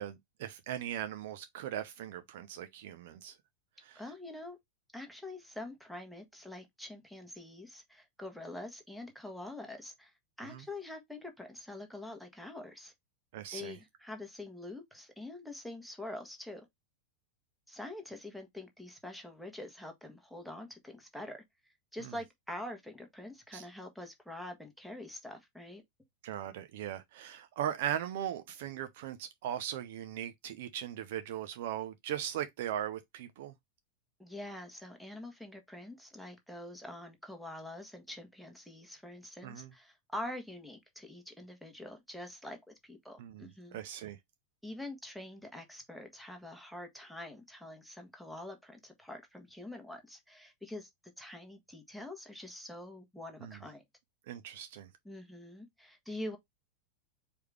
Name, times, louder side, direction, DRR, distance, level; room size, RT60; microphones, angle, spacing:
voice 1, 0.0-3.4 3.8-4.0 10.4-10.6 13.3-13.8 22.0-22.1 23.5-23.6 26.2-33.5 39.4-39.7 43.2-44.2 53.4-53.6 54.3-54.9, right 10 dB, 50° right, 0.6 m, -39 dB
voice 2, 3.9-4.6 4.9-10.1 10.4-12.9 13.5-16.7 17.7-21.4 21.9-25.8 34.2-43.8 44.6-50.9 51.2-53.8 55.0-56.4, left 1 dB, ahead, 1.3 m, -45 dB
4.7 x 3.4 x 3.3 m
figure-of-eight pair, 90°, 0 cm